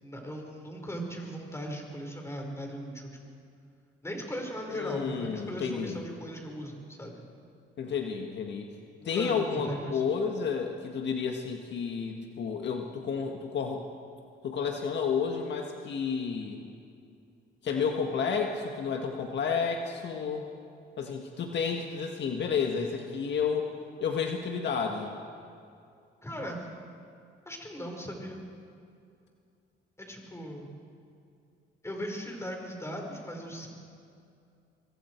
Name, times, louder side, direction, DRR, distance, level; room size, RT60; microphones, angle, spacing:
voice 1, 0.0-3.2 4.0-7.3 9.0-10.0 26.2-26.7 27.4-28.4 30.0-30.7 31.8-33.7, equal, 15° left, 1 dB, 4.7 m, -38 dB
voice 2, 4.7-6.0 7.8-8.7 9.0-13.8 14.4-16.6 17.6-20.5 21.0-23.7 24.0-25.1, left 6 dB, 60° left, 2 dB, 1.8 m, -31 dB
25.0 x 24.0 x 4.6 m, 2.5 s
cardioid pair, 90°, 20 cm